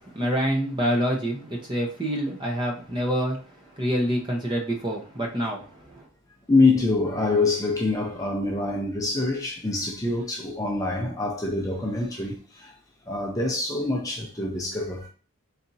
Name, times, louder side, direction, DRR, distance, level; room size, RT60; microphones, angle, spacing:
voice 1, 0.1-3.4 3.8-5.6, equal, 20° right, 0.8 m, -26 dB
voice 2, 6.5-12.7 13.1-15.1, left 3 dB, 15° left, 0.6 m, -25 dB
4.0 x 3.4 x 2.7 m
head